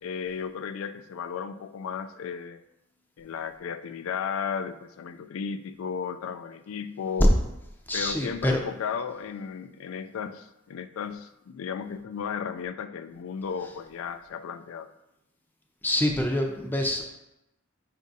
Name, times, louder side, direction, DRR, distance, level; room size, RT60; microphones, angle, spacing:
voice 1, 0.0-2.6 3.2-7.3 7.9-14.9, left 6 dB, 80° left, 12 dB, 0.3 m, -34 dB
voice 2, 7.9-8.6 15.8-17.1, left 1 dB, 10° left, 1 dB, 0.5 m, -26 dB
5.1 x 2.4 x 3.9 m, 0.90 s
head